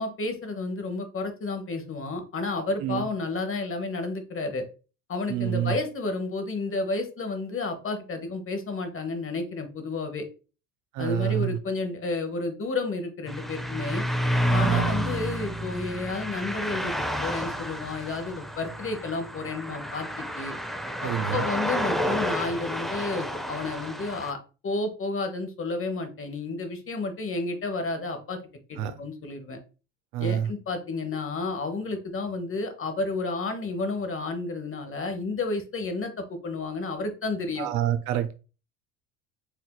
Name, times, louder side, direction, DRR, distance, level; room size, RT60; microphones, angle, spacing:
voice 1, 0.0-4.6 5.1-10.2 11.0-14.0 14.5-16.9 17.2-20.5 21.0-24.4 24.6-28.4 28.7-29.6 30.2-37.7, left 3 dB, 30° left, 7 dB, 0.9 m, -31 dB
voice 2, 5.3-5.7 10.9-11.6 14.6-14.9 21.0-21.5 28.8-28.9 30.1-30.5 37.6-38.4, right 11 dB, 75° right, 8 dB, 0.6 m, -27 dB
sound 1, 13.3-24.3, equal, ahead, 0.5 m, -30 dB
4.4 x 2.7 x 2.2 m, 0.34 s
hypercardioid pair, 65°, 43 cm